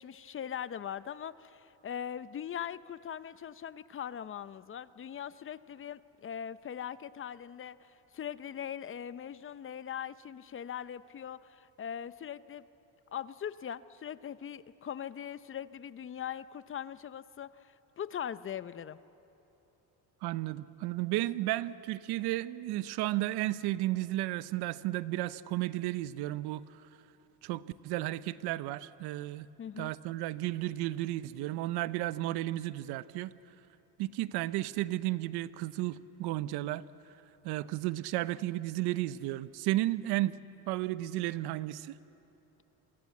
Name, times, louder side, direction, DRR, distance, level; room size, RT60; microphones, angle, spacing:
voice 1, 0.0-12.7 13.1-19.0 29.6-29.9, left 9 dB, 35° left, 15 dB, 0.6 m, -41 dB
voice 2, 20.2-26.6 27.4-29.5 29.8-33.3 34.0-36.8 37.4-40.4 40.7-42.0, right 16 dB, 85° right, 16 dB, 0.8 m, -33 dB
27.5 x 23.0 x 8.4 m, 2.9 s
cardioid pair, 110°, 38 cm